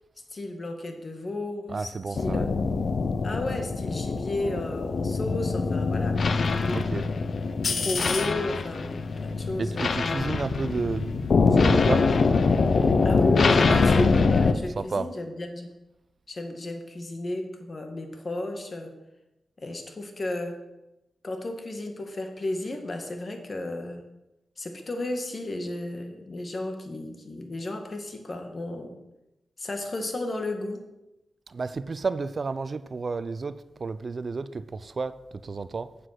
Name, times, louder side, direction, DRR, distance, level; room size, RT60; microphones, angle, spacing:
voice 1, 0.3-2.6 3.2-6.9 7.7-10.2 13.0-15.7 16.3-19.0 19.6-20.6 21.2-24.0 24.6-29.0 29.6-30.9, left 2 dB, 45° left, 5 dB, 1.8 m, -33 dB
voice 2, 1.7-2.5 6.7-7.0 9.6-11.1 11.5-12.1 13.7-13.8 14.8-15.1 31.5-35.2 35.4-35.9, right 4 dB, 50° right, 14 dB, 0.6 m, -31 dB
sound 1, 2.2-14.5, left 4 dB, 65° left, 0.7 m, -24 dB
8.3 x 7.5 x 6.0 m, 0.95 s
cardioid pair, 60°, 0 cm